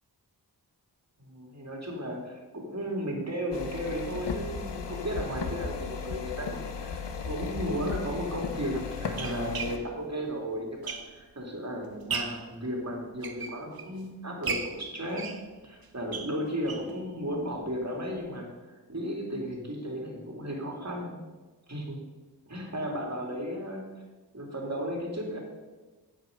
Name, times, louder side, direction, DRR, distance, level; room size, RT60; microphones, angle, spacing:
voice 1, 1.2-15.3 15.6-21.2 21.7-22.0 22.5-23.8 24.3-25.4, equal, 40° right, 0 dB, 2.7 m, -34 dB
sound 1, 3.5-9.8, left 5 dB, 85° left, 0.9 m, -36 dB
sound 2, 7.6-7.7 8.5-11.4 11.8-12.5 13.0-14.0 14.4-17.0 17.3-17.4 17.7-17.8 18.2-18.3, right 5 dB, 60° right, 0.9 m, -37 dB
9.3 x 7.4 x 5.2 m, 1.2 s
cardioid pair, 45°, 41 cm